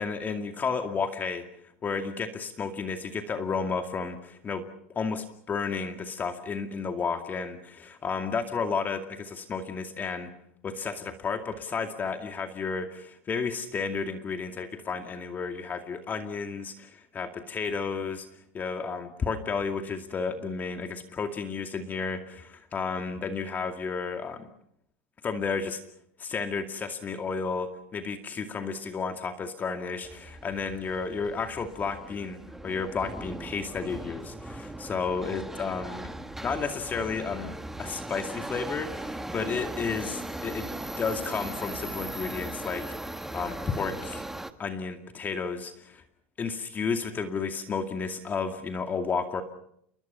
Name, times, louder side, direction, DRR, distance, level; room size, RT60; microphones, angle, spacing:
voice 1, 0.0-1.5 1.8-4.7 4.9-10.3 10.6-18.3 18.5-24.5 25.2-25.8 26.2-36.1 36.4-40.7 41.0-42.9 43.3-44.3 44.6-46.0 46.4-49.4, left 5 dB, 30° left, 6 dB, 2.3 m, -32 dB
Subway metro underground, 30.0-44.5, right 1 dB, 5° right, 1.7 m, -38 dB
29.0 x 22.0 x 5.7 m, 0.69 s
hypercardioid pair, 100°, 6 cm